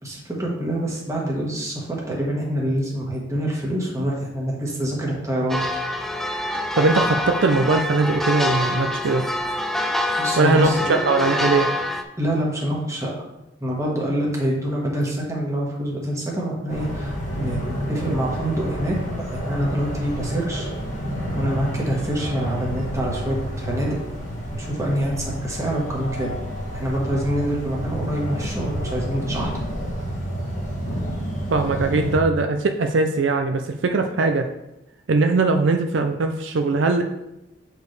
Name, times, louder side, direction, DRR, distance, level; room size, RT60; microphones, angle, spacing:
voice 1, 0.0-5.6 10.2-11.0 12.2-13.2 13.6-19.0 19.3-20.7 21.3-24.0 24.5-26.3 26.7-29.5, right 1 dB, 15° right, -3 dB, 1.4 m, -26 dB
sound 1, 5.5-12.0, left 1 dB, ahead, 0.3 m, -25 dB
voice 2, 6.7-9.3 10.4-11.7 31.5-34.5 35.1-37.0, right 3 dB, 75° right, 5 dB, 0.5 m, -20 dB
sound 2, 16.7-32.2, equal, 40° left, 1.4 m, -29 dB
6.9 x 4.6 x 3.3 m, 0.90 s
head